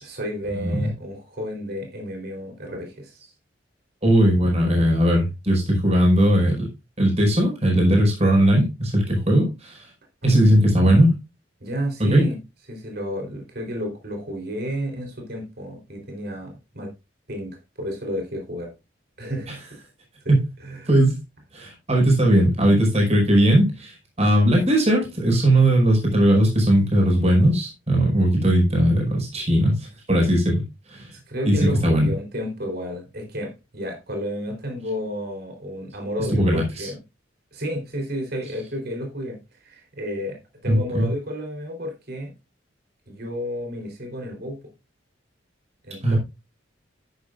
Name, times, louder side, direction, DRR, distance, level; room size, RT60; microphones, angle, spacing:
voice 1, 0.0-3.3 10.2-11.1 11.6-12.4 12.7-16.9 17.3-18.7 19.2-19.6 20.2-20.9 31.1-37.0 37.5-40.4 40.6-42.3 43.1-44.6 45.8-46.2, equal, 55° right, 2 dB, 3.8 m, -31 dB
voice 2, 0.6-0.9 4.0-6.7 7.0-9.8 10.2-11.1 12.0-12.2 20.3-20.4 20.9-21.2 21.5-30.6 30.9-31.1 31.4-32.1 36.3-36.9 40.6-41.1 46.0-46.2, right 1 dB, 35° right, 0 dB, 5.1 m, -19 dB
12.0 x 9.9 x 2.5 m, 0.25 s
head